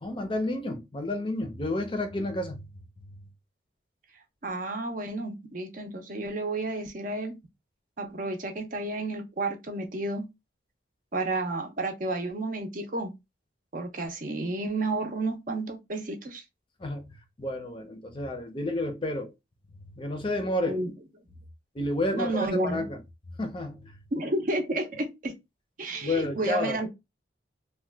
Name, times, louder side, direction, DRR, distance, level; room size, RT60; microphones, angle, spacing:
voice 1, 0.0-2.6 16.8-17.0 17.4-19.3 20.0-20.8 21.7-23.0 23.4-24.0 26.0-26.8, left 1 dB, 25° left, 0.5 m, -30 dB
voice 2, 4.4-7.4 8.0-10.3 11.1-13.1 13.7-16.4 20.7-20.9 22.1-22.9 24.1-25.3 25.8-26.9, right 2 dB, 45° right, 0.6 m, -31 dB
2.8 x 2.2 x 3.3 m
head